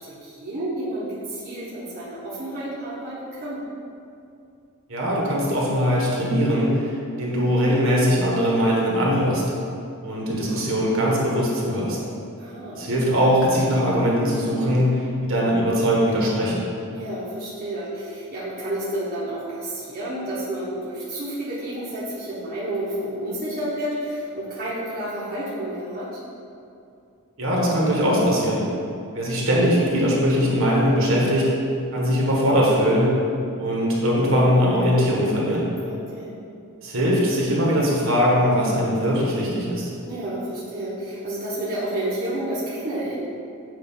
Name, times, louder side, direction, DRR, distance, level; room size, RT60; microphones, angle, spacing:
voice 1, 0.0-3.6 12.4-12.8 16.9-26.1 35.8-36.3 40.0-43.2, right 1 dB, 40° right, -9 dB, 1.1 m, -30 dB
voice 2, 4.9-9.4 10.0-12.0 12.7-16.6 27.4-28.7 29.1-31.5 31.9-33.1 33.6-35.6 36.8-39.9, equal, 65° right, -4 dB, 1.4 m, -21 dB
7.8 x 2.7 x 5.5 m, 2.5 s
head